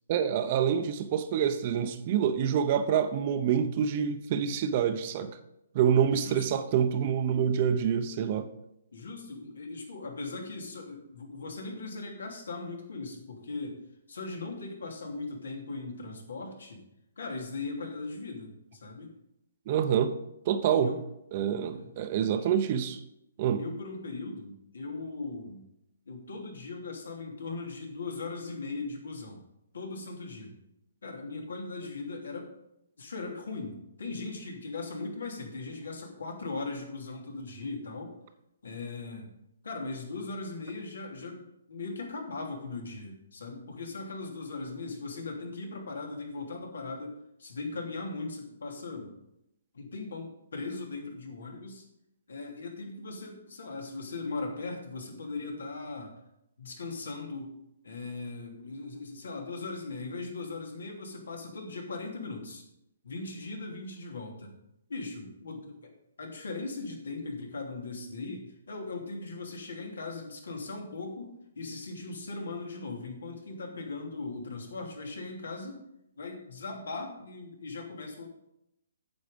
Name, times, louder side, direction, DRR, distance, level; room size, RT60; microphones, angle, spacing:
voice 1, 0.1-5.4 5.7-8.5 19.7-20.1 20.5-20.9 21.3-23.0 23.4-23.6, right 8 dB, 35° right, 10 dB, 0.7 m, -27 dB
voice 2, 6.1-6.6 8.9-13.8 14.1-16.8 17.2-19.1 20.8-21.0 21.7-21.9 23.6-25.6 26.1-29.4 29.7-30.5 31.0-32.5 33.0-38.1 38.6-39.3 39.6-49.1 49.7-51.8 52.3-56.1 56.6-57.5 57.8-62.6 63.0-64.5 64.9-65.9 66.2-75.8 76.2-78.3, left 3 dB, 85° left, 1 dB, 2.8 m, -39 dB
9.2 x 7.2 x 5.2 m, 0.83 s
hypercardioid pair, 160°, 0 cm